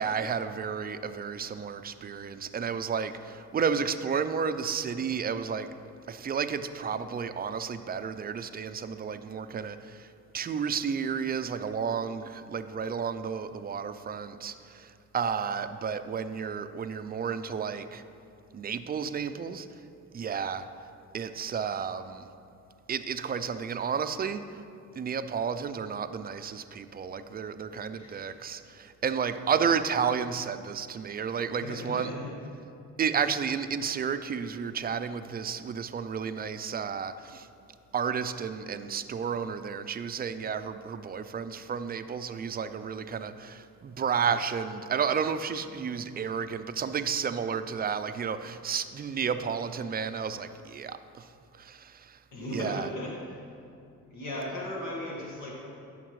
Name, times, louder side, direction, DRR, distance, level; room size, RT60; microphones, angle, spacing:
voice 1, 0.0-5.7 6.1-18.0 18.5-19.7 20.1-20.7 21.1-22.3 22.9-24.4 25.0-32.1 33.0-37.5 37.9-51.3 51.5-52.2 52.5-52.9, right 6 dB, 30° right, 11 dB, 0.4 m, -32 dB
voice 2, 27.9-28.4 31.5-32.3 52.3-53.4 54.0-55.6, left 1 dB, 75° left, -4 dB, 1.5 m, -37 dB
13.0 x 5.8 x 3.1 m, 2.5 s
cardioid pair, 90°, 30 cm